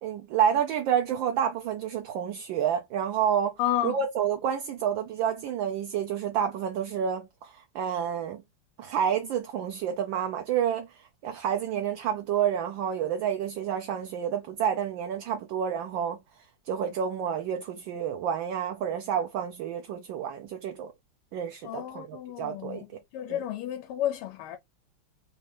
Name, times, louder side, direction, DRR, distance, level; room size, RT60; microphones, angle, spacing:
voice 1, 0.0-3.5 3.8-8.4 8.8-16.2 16.6-20.9 21.3-22.8 23.3-23.4, right 8 dB, 70° right, 1.2 m, -29 dB
voice 2, 3.6-4.0 21.6-22.9 23.1-24.6, left 12 dB, 90° left, 1.5 m, -31 dB
4.0 x 2.6 x 3.3 m
omnidirectional pair, 2.4 m